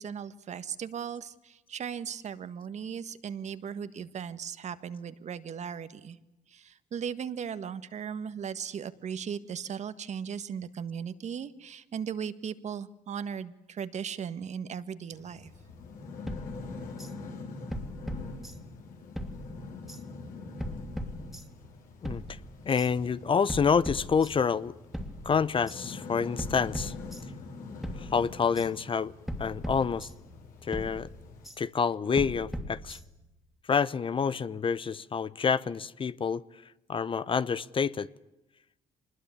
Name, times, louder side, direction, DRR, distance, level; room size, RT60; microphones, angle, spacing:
voice 1, 0.0-6.2 6.5-15.5, right 7 dB, 55° right, 1.6 m, -37 dB
sound 1, 15.1-31.5, left 3 dB, 75° left, 5.8 m, -45 dB
sound 2, 16.3-17.1 17.7-18.9 19.2-20.0 20.6-21.7 22.0-22.9 23.5-24.6 24.9-25.8 26.4-27.6 27.8-28.7 29.3-30.4 30.7-31.6 32.2-33.3, equal, ahead, 2.7 m, -39 dB
voice 2, 22.0-22.4 22.7-24.7 25.2-26.9 28.0-29.1 29.4-30.1 30.6-31.1 31.6-33.0 33.7-36.4 36.9-38.1, left 6 dB, 35° left, 0.9 m, -28 dB
25.0 x 20.5 x 8.5 m
cardioid pair, 80°, 15 cm